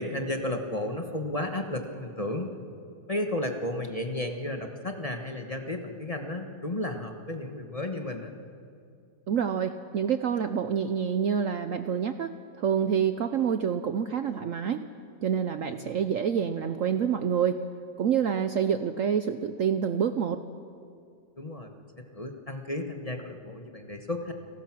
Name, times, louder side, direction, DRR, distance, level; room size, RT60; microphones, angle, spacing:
voice 1, 0.0-2.5 3.1-8.3 15.7-15.9 21.4-24.3, left 1 dB, 25° left, 4 dB, 1.3 m, -33 dB
voice 2, 9.3-14.9 15.2-17.6 18.0-20.4, right 7 dB, 60° right, 9 dB, 0.9 m, -27 dB
29.5 x 19.5 x 6.1 m, 2.4 s
omnidirectional pair, 1.9 m